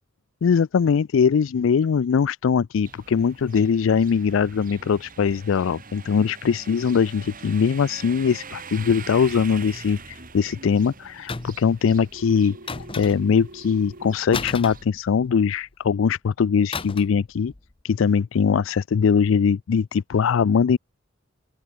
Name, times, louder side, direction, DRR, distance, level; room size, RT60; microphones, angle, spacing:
voice 1, 0.4-12.6 13.0-17.5 17.8-20.8, left 6 dB, 75° left, 0.4 m, -21 dB
sound 1, 2.8-14.8, right 5 dB, 45° right, 7.1 m, -43 dB
sound 2, 11.3-11.7 12.7-13.4 14.3-15.5 16.7-17.2 17.5-17.7, left 4 dB, 25° left, 0.7 m, -33 dB
Telephone, 12.1-14.1, right 2 dB, 60° right, 2.4 m, -44 dB
open air
head